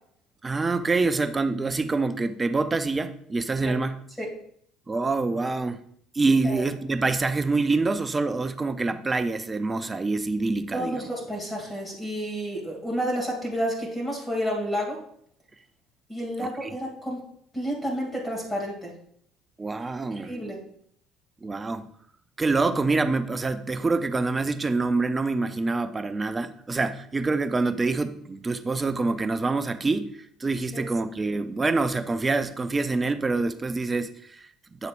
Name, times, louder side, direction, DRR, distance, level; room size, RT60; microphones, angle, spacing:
voice 1, 0.4-4.0 4.9-5.8 6.1-11.1 16.4-16.7 19.6-20.3 21.4-21.8 22.4-34.9, right 3 dB, 25° right, 11 dB, 0.6 m, -26 dB
voice 2, 10.7-15.0 16.1-17.2 17.5-18.9 20.2-20.6 30.7-30.8, equal, 10° left, -2 dB, 2.7 m, -30 dB
8.2 x 6.5 x 2.5 m, 0.66 s
hypercardioid pair, 60°, 0 cm